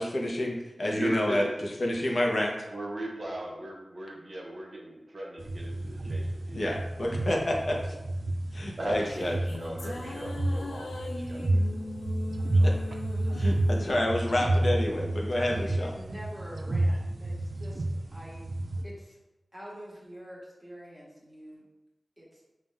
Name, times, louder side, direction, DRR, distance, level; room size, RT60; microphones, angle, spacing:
voice 1, 0.0-2.5 6.5-7.5 8.5-9.4 12.6-12.7 13.4-15.9, left 1 dB, 60° left, 0 dB, 0.8 m, -29 dB
voice 2, 0.9-1.5 2.7-7.2 7.7-7.8 8.8-11.6 12.6-12.8, right 1 dB, 45° right, -2 dB, 0.8 m, -38 dB
sound 1, 5.4-18.8, right 1 dB, 65° right, 0.4 m, -30 dB
sound 2, 8.8-15.4, left 2 dB, 85° left, 0.4 m, -41 dB
voice 3, 15.3-17.8 18.1-18.5 18.8-19.2 19.5-21.6 22.2-22.4, equal, 5° right, -7 dB, 1.5 m, -45 dB
5.4 x 2.5 x 3.3 m, 0.99 s
wide cardioid pair, 80°, 0 cm